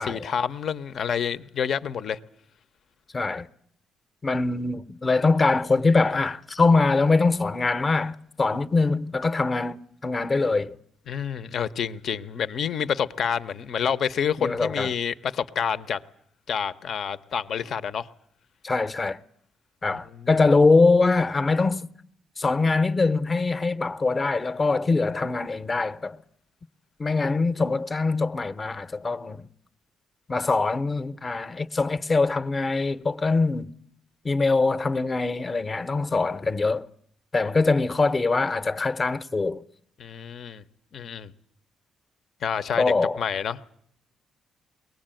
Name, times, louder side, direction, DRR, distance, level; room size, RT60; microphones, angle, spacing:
voice 1, 0.0-2.2 11.1-16.0 16.5-18.1 19.9-20.3 40.0-40.6 40.9-41.3 42.4-43.7, left 7 dB, 60° left, 0.9 m, -28 dB
voice 2, 3.1-3.5 4.2-9.8 10.0-10.8 14.4-14.9 18.6-19.2 19.8-21.9 22.4-26.2 27.0-29.5 30.3-33.7 34.2-36.9 37.3-39.6 42.8-43.2, left 3 dB, 30° left, 0.9 m, -23 dB
22.0 x 18.5 x 9.0 m
cardioid pair, 90°, 0 cm